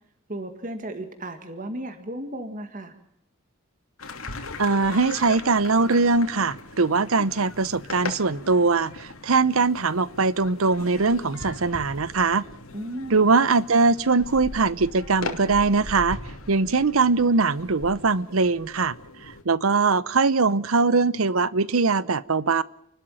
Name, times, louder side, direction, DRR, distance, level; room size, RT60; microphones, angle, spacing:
voice 1, 0.3-2.9 12.7-13.3, right 1 dB, 40° right, 7 dB, 1.9 m, -34 dB
sound 1, 4.0-19.4, left 2 dB, 90° left, 2.9 m, -39 dB
voice 2, 4.6-12.4 13.1-16.2 16.5-18.9 19.5-22.6, right 4 dB, 85° right, 18 dB, 0.8 m, -21 dB
29.5 x 12.5 x 9.0 m, 0.75 s
head